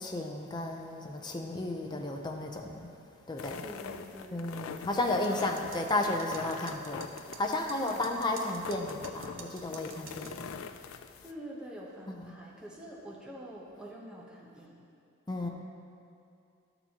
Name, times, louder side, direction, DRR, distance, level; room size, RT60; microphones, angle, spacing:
voice 1, 0.0-2.9 3.3-3.7 4.3-10.5 12.1-12.3 15.3-15.5, left 2 dB, 20° left, 2 dB, 0.6 m, -33 dB
sound 1, 3.4-11.3, left 6 dB, 85° left, 0.4 m, -44 dB
voice 2, 3.6-4.4 4.9-5.1 7.7-8.1 11.2-14.9 15.4-15.5, right 1 dB, 5° right, -5 dB, 1.0 m, -46 dB
sound 2, 5.2-10.4, right 7 dB, 70° right, 0.7 m, -49 dB
12.5 x 6.8 x 2.9 m, 2.6 s
head